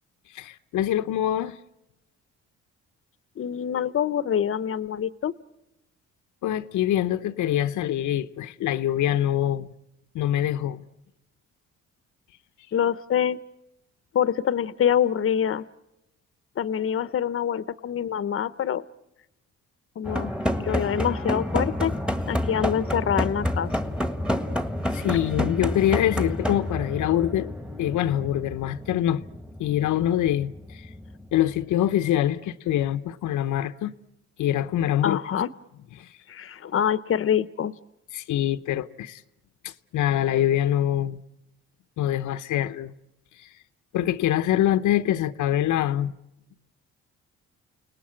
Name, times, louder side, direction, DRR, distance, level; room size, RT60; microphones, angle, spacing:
voice 1, 0.3-1.6 6.4-9.7 10.1-10.8 24.9-27.5 27.8-29.2 29.6-30.9 31.3-33.9 34.4-35.2 36.0-36.1 38.1-39.2 39.6-41.2 42.0-42.9 43.4-43.5 43.9-46.1, left 12 dB, 80° left, 0.9 m, -24 dB
voice 2, 3.4-5.3 12.7-13.4 14.1-15.6 16.6-18.8 20.0-20.3 20.6-21.9 22.3-23.7 35.0-35.5 36.3-37.7, left 9 dB, 45° left, 0.8 m, -25 dB
sound 1, 20.1-31.9, left 1 dB, 5° right, 1.4 m, -29 dB
29.5 x 18.5 x 8.7 m
cardioid pair, 90°, 30 cm